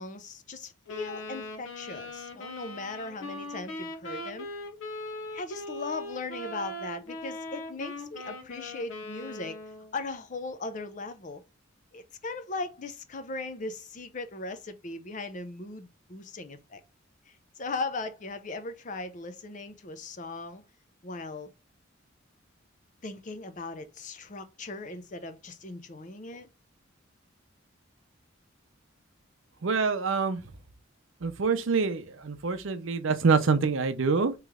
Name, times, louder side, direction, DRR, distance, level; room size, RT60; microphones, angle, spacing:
voice 1, 0.0-4.5 5.3-9.6 9.9-11.4 11.9-16.8 17.3-20.6 21.0-21.5 23.0-26.5, left 3 dB, 35° left, 0.5 m, -38 dB
Wind instrument woodwind instrument, 0.9-9.9, left 1 dB, 70° left, 0.7 m, -40 dB
voice 2, 29.6-30.4 31.2-34.3, right 4 dB, 70° right, 0.6 m, -26 dB
3.1 x 3.0 x 3.5 m
head